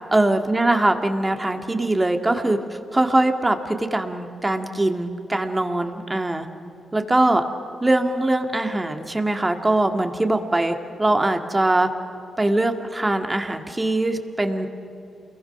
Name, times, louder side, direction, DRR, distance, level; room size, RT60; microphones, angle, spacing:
voice 1, 0.1-2.6 2.9-6.5 6.9-7.4 7.8-11.9 12.4-14.7, right 2 dB, 20° right, 5 dB, 2.2 m, -22 dB
28.5 x 22.0 x 6.1 m, 2.8 s
cardioid pair, 55°, 0 cm